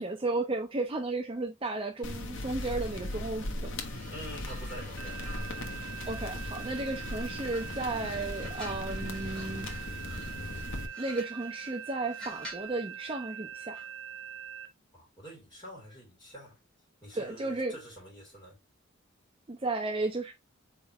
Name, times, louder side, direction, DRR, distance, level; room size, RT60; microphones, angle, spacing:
voice 1, 0.0-3.7 6.1-9.9 11.0-13.8 17.1-17.8 19.5-20.3, right 2 dB, 25° right, 0.5 m, -34 dB
sound 1, 2.0-10.9, left 1 dB, 65° left, 0.9 m, -38 dB
sound 2, 3.8-7.1 7.5-12.8 13.7-14.0, equal, 5° left, 1.5 m, -50 dB
voice 2, 4.1-5.2 14.9-16.6 17.0-18.6, equal, 20° left, 3.4 m, -47 dB
sound 3, 5.0-14.7, right 8 dB, 65° right, 0.7 m, -43 dB
4.5 x 3.7 x 2.9 m
head